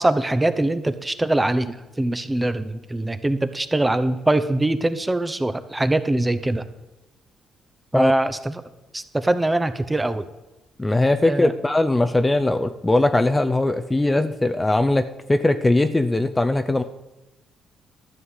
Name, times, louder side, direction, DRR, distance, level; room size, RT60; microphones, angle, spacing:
voice 1, 0.0-6.6 7.9-8.6 8.9-10.2 11.2-11.5, right 1 dB, 15° right, 11 dB, 0.8 m, -22 dB
voice 2, 10.8-16.8, left 2 dB, 15° left, 8 dB, 0.6 m, -20 dB
12.5 x 5.6 x 8.2 m, 1.0 s
cardioid pair, 90°, 0 cm